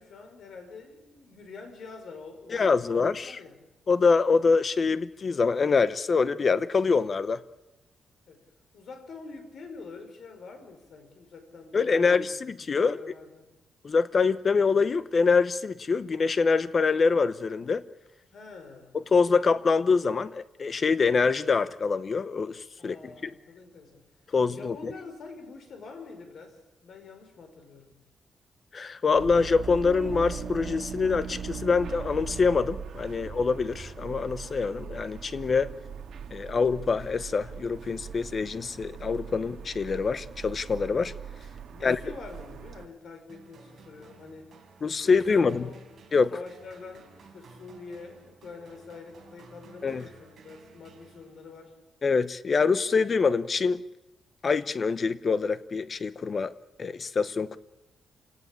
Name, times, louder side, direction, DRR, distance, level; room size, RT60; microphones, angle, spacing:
voice 1, 0.0-3.6 8.3-8.4 8.7-12.5 12.8-13.5 18.3-19.0 22.8-24.0 24.5-28.0 33.1-33.4 41.7-44.5 45.0-46.0 46.3-51.7, left 4 dB, 55° left, 5.4 m, -46 dB
voice 2, 2.5-3.4 3.9-7.4 11.7-13.0 13.8-17.8 18.9-23.3 24.3-24.9 28.7-35.7 36.3-41.1 41.8-42.0 44.8-45.7 46.1-46.3 49.8-50.0 52.0-53.8 54.4-56.5 56.8-57.6, left 4 dB, 30° left, 0.8 m, -25 dB
sound 1, 29.1-42.9, right 6 dB, 60° right, 2.1 m, -40 dB
sound 2, 43.3-51.7, right 4 dB, 45° right, 5.5 m, -54 dB
27.0 x 17.5 x 8.7 m
wide cardioid pair, 160°, 0 cm